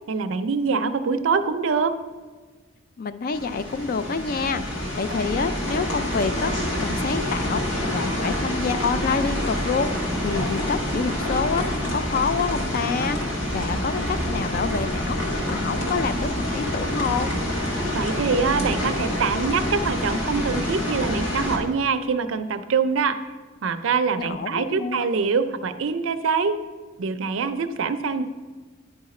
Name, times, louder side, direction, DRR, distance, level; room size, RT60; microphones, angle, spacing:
voice 1, 0.1-1.9 17.9-23.2 23.6-26.6 27.0-28.2, right 5 dB, 75° right, 10 dB, 0.5 m, -24 dB
voice 2, 3.0-17.3 24.2-25.1, left 5 dB, 45° left, 12 dB, 0.4 m, -28 dB
sound 1, 3.3-21.6, left 1 dB, 75° left, 1.6 m, -27 dB
10.0 x 4.8 x 4.2 m, 1.4 s
head